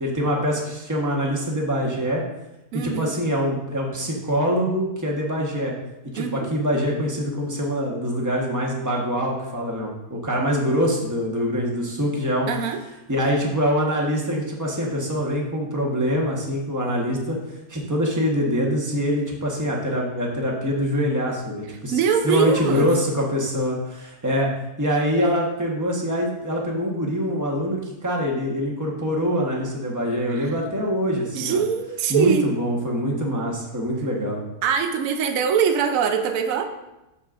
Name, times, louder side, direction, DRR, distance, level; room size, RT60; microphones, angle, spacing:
voice 1, 0.0-2.2 2.7-5.7 6.1-12.5 13.1-17.4 17.7-24.5 24.8-31.6 32.1-34.4, equal, 15° right, -1 dB, 1.0 m, -24 dB
voice 2, 2.7-3.1 6.2-6.5 12.5-12.8 21.9-22.9 30.3-30.5 31.3-32.5 34.6-36.7, right 7 dB, 65° right, 6 dB, 1.0 m, -22 dB
8.4 x 6.8 x 2.5 m, 0.95 s
omnidirectional pair, 1.7 m